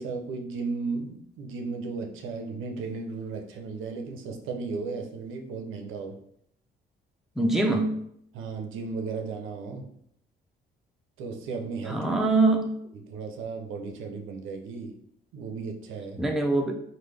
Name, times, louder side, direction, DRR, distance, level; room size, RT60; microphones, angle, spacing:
voice 1, 0.0-6.2 8.3-9.9 11.2-12.2 13.1-14.9 15.3-16.2, right 4 dB, 90° right, 3 dB, 0.6 m, -35 dB
voice 2, 7.4-7.9 11.9-12.7 16.2-16.7, right 2 dB, ahead, 1 dB, 0.5 m, -23 dB
3.6 x 2.1 x 3.2 m, 0.69 s
cardioid pair, 90°, 20 cm